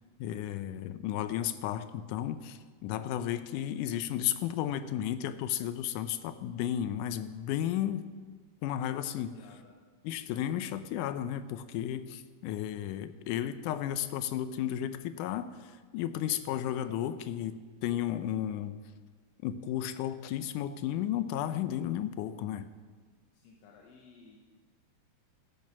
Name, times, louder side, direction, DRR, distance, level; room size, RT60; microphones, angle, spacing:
voice 1, 0.2-8.1 8.6-9.3 10.0-18.8 19.4-22.7, left 11 dB, 80° left, 12 dB, 2.1 m, -33 dB
voice 2, 9.2-9.8 23.3-24.4, left 5 dB, 60° left, 0 dB, 2.0 m, -56 dB
14.0 x 9.2 x 6.1 m, 1.5 s
omnidirectional pair, 3.8 m